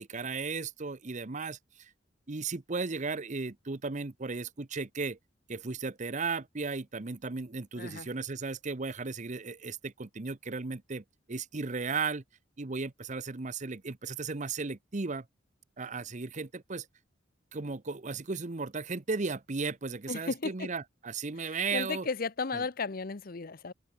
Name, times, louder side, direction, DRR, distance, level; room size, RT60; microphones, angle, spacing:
voice 1, 0.0-1.9 2.3-5.2 5.5-12.2 12.6-15.3 15.8-16.9 17.5-22.1 22.5-22.6, right 4 dB, 40° right, 0.9 m, -35 dB
voice 2, 7.8-8.1 20.1-20.7 21.4-23.7, left 4 dB, 50° left, 0.8 m, -35 dB
open air
head